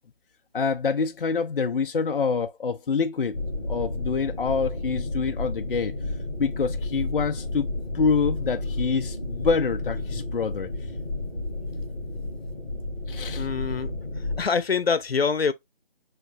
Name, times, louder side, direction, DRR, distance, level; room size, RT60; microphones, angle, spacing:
voice 1, 0.5-3.4 3.7-5.9 6.4-7.7 7.9-10.7 13.1-13.5, left 5 dB, 65° left, 0.5 m, -26 dB
sound 1, 3.3-14.4, left 2 dB, 10° left, 1.9 m, -32 dB
voice 2, 13.4-15.5, left 5 dB, 85° left, 0.8 m, -25 dB
5.1 x 3.1 x 2.6 m
figure-of-eight pair, 175°, 30 cm